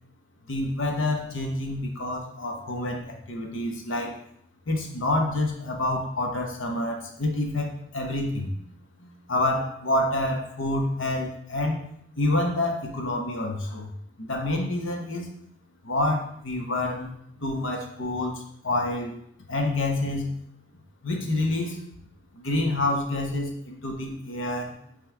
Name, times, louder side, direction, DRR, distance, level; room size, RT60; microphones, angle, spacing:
voice 1, 0.5-4.2 4.7-8.7 9.0-11.8 12.2-13.9 14.2-15.3 15.8-19.1 19.5-20.4 21.0-21.8 22.3-24.8, left 1 dB, 90° left, 2 dB, 1.2 m, -28 dB
9.1 x 3.5 x 3.5 m, 0.71 s
head